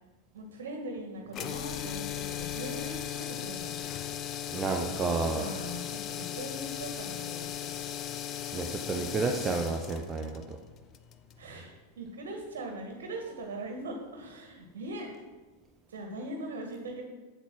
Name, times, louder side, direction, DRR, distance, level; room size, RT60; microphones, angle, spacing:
voice 1, 0.3-3.8 5.3-7.7 11.4-15.1 15.9-17.1, right 1 dB, 60° right, 3 dB, 1.7 m, -40 dB
sound 1, 1.3-11.4, left 10 dB, 35° left, 0.7 m, -37 dB
voice 2, 4.5-5.5 8.5-10.6, right 4 dB, 20° right, 2 dB, 0.8 m, -31 dB
8.2 x 8.2 x 6.1 m, 1.3 s
figure-of-eight pair, 90°, 0 cm